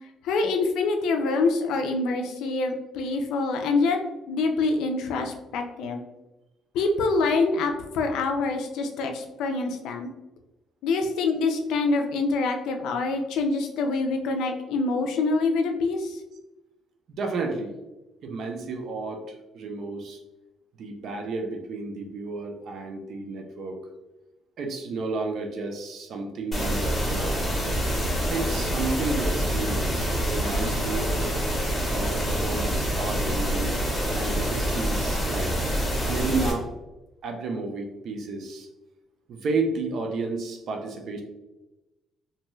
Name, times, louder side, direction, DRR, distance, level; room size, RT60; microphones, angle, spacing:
voice 1, 0.2-4.0 4.3-6.0 6.7-10.1 10.8-16.2, left 3 dB, 80° left, 5 dB, 0.4 m, -25 dB
voice 2, 17.2-17.7 18.2-20.2 20.8-23.8 24.6-27.4 28.3-31.3 31.9-33.8 34.1-35.7 36.1-36.7 37.2-38.7 39.3-41.2, right 3 dB, 50° right, 3 dB, 0.4 m, -32 dB
sound 1, 26.5-36.5, equal, 10° left, 0.7 m, -26 dB
2.6 x 2.2 x 3.0 m, 1.0 s
cardioid pair, 170°, 0 cm